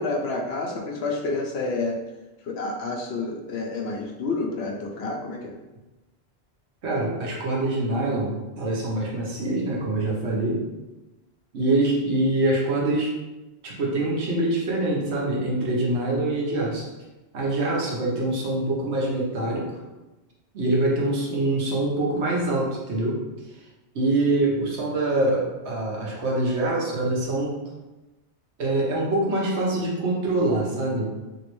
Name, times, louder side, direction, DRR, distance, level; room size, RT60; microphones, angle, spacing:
voice 1, 0.0-2.0 2.4-5.6, left 3 dB, 70° left, 1 dB, 0.8 m, -29 dB
voice 2, 6.8-10.6 11.5-13.1 13.6-16.9 17.3-19.7 20.5-23.2 23.9-27.5 28.6-31.1, right 2 dB, 80° right, -3 dB, 1.1 m, -24 dB
3.0 x 2.9 x 3.0 m, 1.1 s
omnidirectional pair, 1.1 m